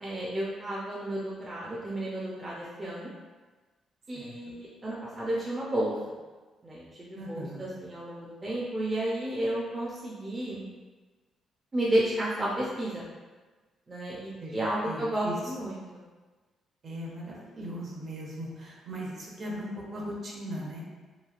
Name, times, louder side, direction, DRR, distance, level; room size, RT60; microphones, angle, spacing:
voice 1, 0.0-3.1 4.1-5.9 6.6-10.6 11.7-13.0 13.9-16.0, right 1 dB, 25° right, -5 dB, 0.5 m, -32 dB
voice 2, 4.1-4.5 7.2-7.6 14.4-14.5 14.8-15.7 16.8-20.8, equal, 55° right, -3 dB, 0.8 m, -38 dB
3.0 x 2.3 x 2.4 m, 1.3 s
cardioid pair, 90°, 0 cm